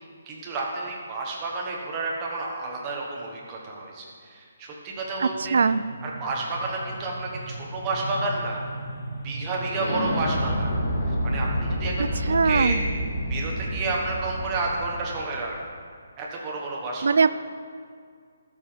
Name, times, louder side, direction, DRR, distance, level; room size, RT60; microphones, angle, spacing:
voice 1, 0.3-5.6 6.0-8.6 9.2-10.7 11.1-11.9 12.2-12.8 13.3-15.5 16.2-17.2, right 3 dB, 15° right, -2 dB, 1.4 m, -31 dB
sound 1, 5.1-15.3, equal, 35° left, 2.5 m, -30 dB
voice 2, 5.2-5.8 12.0-12.8 17.0-17.3, right 5 dB, 55° right, 14 dB, 0.4 m, -21 dB
19.0 x 7.0 x 5.2 m, 2.1 s
hypercardioid pair, 180°, 0 cm